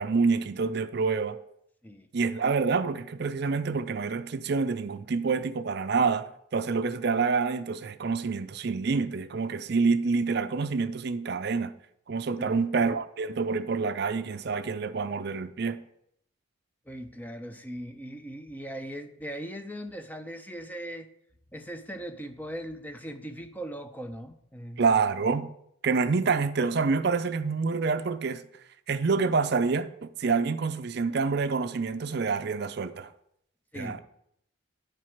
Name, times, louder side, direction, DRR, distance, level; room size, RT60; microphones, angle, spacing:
voice 1, 0.0-1.4 2.1-11.7 12.1-15.8 24.8-25.5 25.8-28.4 28.9-33.1 33.8-34.0, right 4 dB, 55° right, 0.5 m, -27 dB
voice 2, 16.9-21.1 21.5-24.9 33.7-34.0, equal, 10° left, 0.5 m, -39 dB
10.0 x 4.7 x 5.8 m
head